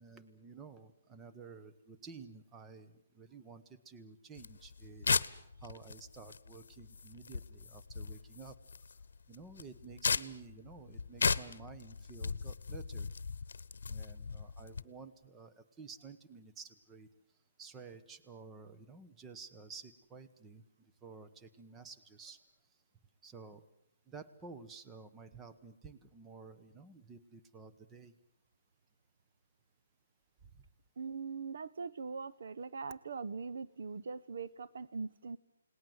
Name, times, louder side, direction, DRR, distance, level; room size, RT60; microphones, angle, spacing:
voice 1, 0.0-8.6 9.3-13.1 13.9-17.1 17.6-22.4 23.2-23.6 24.1-28.1 30.4-30.6, right 4 dB, 10° right, 9 dB, 1.0 m, -52 dB
sound 1, 4.4-14.8, left 5 dB, 75° left, 0.9 m, -37 dB
voice 2, 31.0-35.4, right 5 dB, 65° right, 13 dB, 0.9 m, -41 dB
29.0 x 19.0 x 7.9 m, 0.80 s
hypercardioid pair, 165°, 0 cm